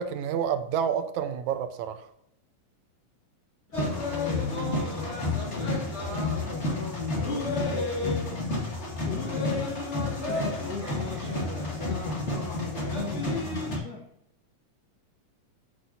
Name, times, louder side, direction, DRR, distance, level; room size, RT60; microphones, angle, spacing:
voice 1, 0.0-2.0, right 8 dB, 80° right, 2.1 m, -29 dB
voice 2, 3.7-8.7 9.0-10.0 10.2-14.1, left 5 dB, 85° left, 0.8 m, -39 dB
sound 1, 3.7-13.8, left 2 dB, 25° left, 1.9 m, -30 dB
14.0 x 6.3 x 2.7 m
omnidirectional pair, 3.4 m